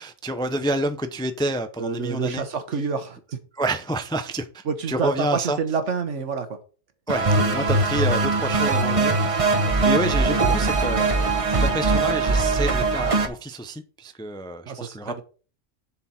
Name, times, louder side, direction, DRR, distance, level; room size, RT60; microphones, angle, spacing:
voice 1, 0.0-2.4 3.6-5.6 7.1-9.1 9.8-11.1 11.6-15.2, right 1 dB, 5° left, 0.4 m, -28 dB
voice 2, 1.8-3.4 4.6-6.5 10.0-10.4 10.9-11.0 14.6-15.2, right 5 dB, 70° right, 1.5 m, -28 dB
sound 1, 7.1-13.3, right 3 dB, 30° right, 0.9 m, -21 dB
7.1 x 4.7 x 5.7 m
omnidirectional pair, 1.3 m